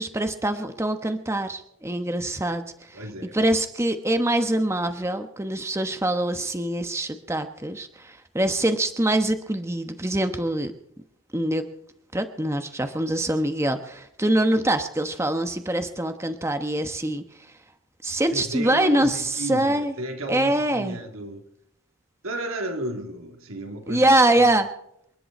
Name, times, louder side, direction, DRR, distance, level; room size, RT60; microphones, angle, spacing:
voice 1, 0.0-3.0 3.3-10.7 11.3-11.6 12.1-17.6 18.0-19.9 20.3-21.0 23.9-24.7, right 1 dB, 15° right, 1.0 m, -24 dB
voice 2, 2.9-3.3 18.3-21.4 22.2-24.0 24.4-24.5, right 1 dB, 80° right, 3.0 m, -33 dB
28.0 x 11.0 x 4.3 m
head